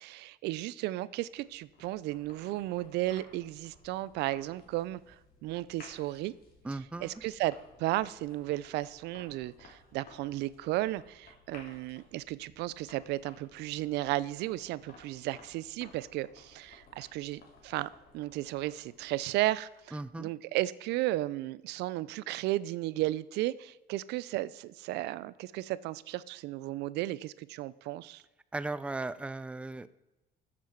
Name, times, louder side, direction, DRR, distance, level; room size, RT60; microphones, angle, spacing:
voice 1, 0.0-5.2 5.4-6.3 7.0-28.2, right 16 dB, 85° right, 0.4 m, -34 dB
sound 1, 1.0-20.1, left 3 dB, 60° left, 2.9 m, -58 dB
voice 2, 6.6-7.2 19.9-20.3 28.5-29.9, right 2 dB, 5° right, 0.4 m, -37 dB
13.5 x 7.5 x 4.5 m
cardioid pair, 110°, 17 cm